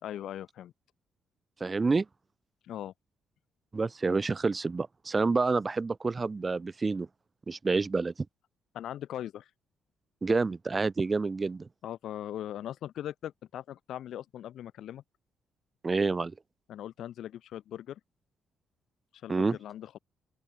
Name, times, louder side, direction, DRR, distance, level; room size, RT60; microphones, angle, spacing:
voice 1, 0.0-0.7 2.6-2.9 8.7-9.5 11.8-15.0 16.7-18.0 19.2-20.0, left 11 dB, 75° left, 3.6 m, -40 dB
voice 2, 1.6-2.0 3.7-7.1 7.5-8.1 10.2-11.7 15.8-16.3 19.3-19.6, right 4 dB, 30° right, 1.6 m, -28 dB
open air
cardioid pair, 90°, 0 cm